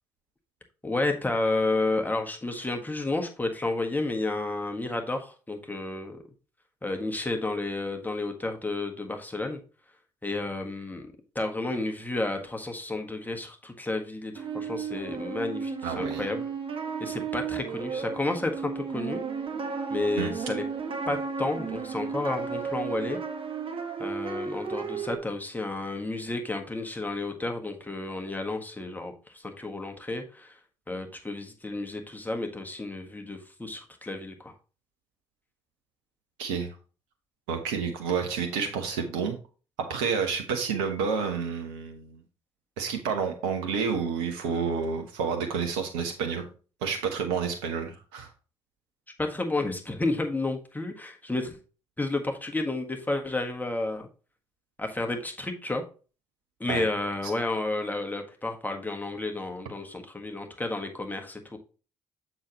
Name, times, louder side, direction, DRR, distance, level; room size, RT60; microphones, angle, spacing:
voice 1, 0.8-6.2 6.8-9.6 10.2-16.5 17.0-19.2 19.9-20.6 21.1-23.2 24.0-30.6 30.9-34.5 49.2-51.6 52.0-54.1 54.8-55.8 56.6-61.6, left 2 dB, 15° left, 3 dB, 1.5 m, -31 dB
sound 1, 14.3-25.2, right 5 dB, 40° right, 1.5 m, -34 dB
voice 2, 15.8-16.3 20.2-20.3 36.4-36.7 37.5-39.4 39.8-42.2 42.8-46.5 46.8-48.3 56.7-56.8, right 6 dB, 75° right, 4 dB, 1.1 m, -29 dB
7.4 x 6.1 x 3.0 m, 0.35 s
figure-of-eight pair, 45°, 13 cm